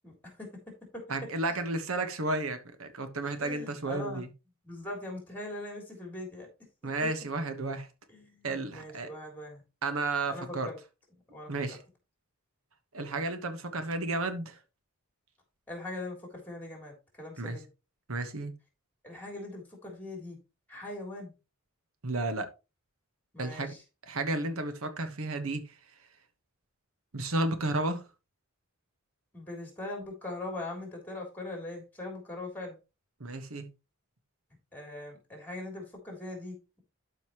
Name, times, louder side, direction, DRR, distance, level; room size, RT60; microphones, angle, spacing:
voice 1, 0.0-1.0 3.4-4.2 4.6-6.5 8.1-9.6 10.3-10.8 11.3-11.8 15.7-17.7 19.0-20.4 20.7-21.3 23.3-23.8 29.3-32.8 34.7-36.8, left 2 dB, 10° left, 3.3 m, -41 dB
voice 2, 1.1-4.3 6.8-7.9 8.4-9.1 9.8-10.7 11.5-11.8 12.9-14.6 17.4-17.6 18.1-18.5 22.0-22.5 23.4-23.7 24.1-25.6 27.1-28.0 33.2-33.7, right 2 dB, 80° right, 1.2 m, -32 dB
12.0 x 5.2 x 3.0 m
head